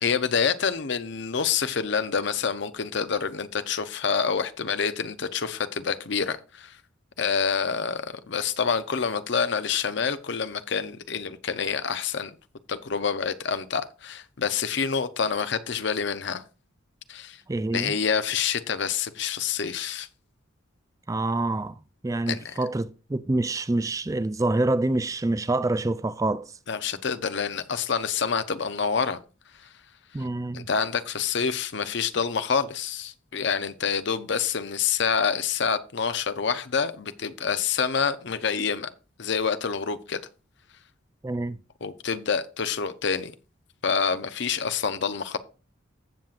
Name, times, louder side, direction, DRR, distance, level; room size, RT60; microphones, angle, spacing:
voice 1, 0.0-6.8 7.2-12.3 12.7-16.4 17.1-17.4 17.7-20.1 22.3-22.5 26.7-29.2 30.5-38.9 39.2-40.2 41.8-43.3 43.8-45.4, left 6 dB, 60° left, 0.7 m, -27 dB
voice 2, 17.5-18.0 21.1-21.8 22.0-26.5 30.1-30.7 41.2-41.6, right 2 dB, 15° right, 0.3 m, -26 dB
15.0 x 7.2 x 2.5 m
head